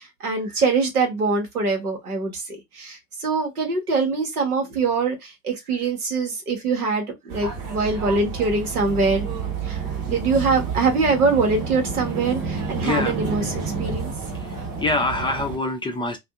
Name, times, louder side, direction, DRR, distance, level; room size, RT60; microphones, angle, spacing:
voice 1, 0.0-9.3 9.6-14.1, right 4 dB, 85° right, 1.0 m, -23 dB
sound 1, 7.3-15.6, right 5 dB, 65° right, 1.2 m, -30 dB
voice 2, 12.8-13.1 13.9-14.0 14.8-16.2, left 2 dB, 10° left, 0.4 m, -25 dB
2.6 x 2.3 x 2.3 m
figure-of-eight pair, 65°, 43 cm